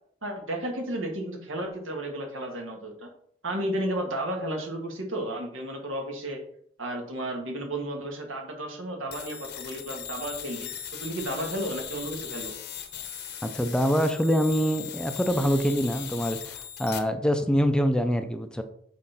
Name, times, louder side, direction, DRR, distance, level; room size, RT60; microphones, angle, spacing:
voice 1, 0.2-3.1 3.4-6.4 6.8-10.7 11.0-12.5, right 1 dB, 90° right, 3 dB, 1.7 m, -33 dB
sound 1, 9.1-17.0, left 9 dB, 60° left, 0.9 m, -39 dB
voice 2, 13.4-18.6, equal, 5° left, 8 dB, 0.5 m, -25 dB
6.4 x 3.8 x 5.6 m, 0.66 s
head